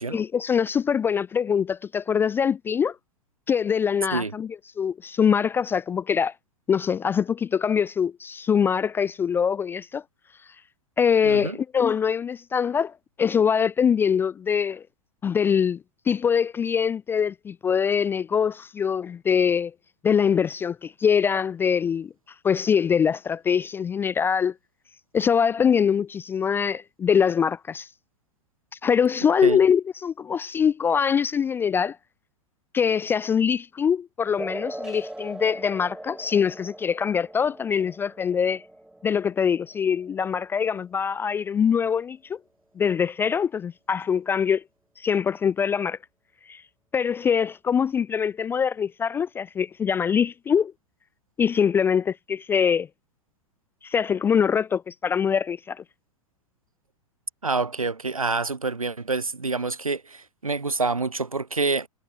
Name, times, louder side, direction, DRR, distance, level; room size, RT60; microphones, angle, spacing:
voice 1, 0.1-3.0 3.5-4.5 4.8-6.3 6.7-10.0 11.0-12.9 13.2-14.8 15.2-15.8 16.1-19.7 20.0-22.1 22.4-24.5 25.1-27.9 28.8-32.0 32.7-38.6 39.0-42.4 42.8-44.6 45.0-46.0 46.5-46.6 46.9-50.7 51.4-52.9 53.8-55.8, left 7 dB, 15° left, 0.3 m, -23 dB
voice 2, 11.2-11.6 29.4-29.6 57.4-61.9, right 3 dB, 85° right, 0.9 m, -27 dB
sound 1, 34.4-41.4, right 1 dB, 5° right, 1.0 m, -40 dB
figure-of-eight pair, 100°, 17 cm